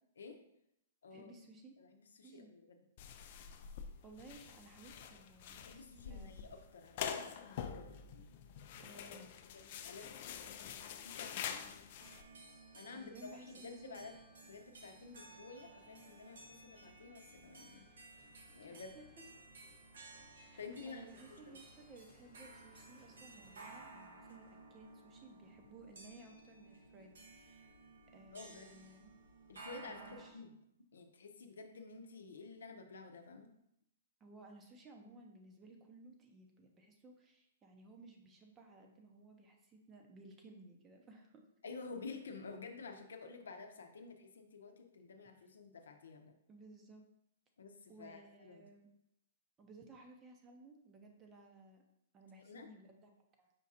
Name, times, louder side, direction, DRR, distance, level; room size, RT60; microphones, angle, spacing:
voice 1, 1.1-1.7 2.2-2.5 4.0-6.5 8.8-9.3 12.9-14.0 18.7-19.1 20.5-20.6 20.9-27.7 28.1-29.1 29.9-30.4 34.2-41.4 46.5-47.0 47.9-48.9 49.6-51.8 52.1-53.5, right 2 dB, 20° right, 3 dB, 0.6 m, -58 dB
voice 2, 1.8-2.8 5.6-8.4 9.5-10.7 11.0-11.8 12.7-14.1 14.4-17.8 18.5-18.9 20.6-21.6 28.3-28.8 29.5-30.5 30.9-33.5 41.6-46.3 47.6-48.6 52.4-52.7, left 4 dB, 85° left, 5 dB, 0.6 m, -51 dB
sound 1, 3.0-12.2, left 8 dB, 50° left, 0.4 m, -46 dB
sound 2, 12.0-30.3, right 3 dB, 85° right, 1.0 m, -57 dB
sound 3, 14.0-24.6, left 1 dB, 10° left, 1.0 m, -69 dB
5.2 x 2.4 x 4.2 m, 0.79 s
hypercardioid pair, 145°, 0 cm